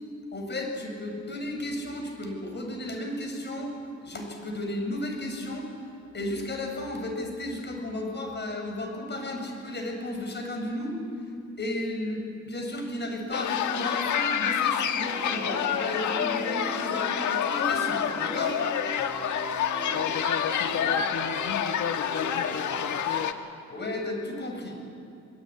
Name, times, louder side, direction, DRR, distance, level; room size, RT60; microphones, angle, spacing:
voice 1, 0.3-3.7 4.0-5.7 6.1-11.0 11.6-18.6 23.7-24.8, left 1 dB, 35° left, 3 dB, 7.3 m, -33 dB
sound 1, 13.3-23.3, left 9 dB, 75° left, 1.7 m, -28 dB
sound 2, 15.0-23.3, right 3 dB, 20° right, 2.5 m, -41 dB
voice 2, 19.9-23.3, left 7 dB, 55° left, 7 dB, 1.4 m, -34 dB
24.0 x 22.5 x 9.9 m, 2.5 s
cardioid pair, 90°, 30 cm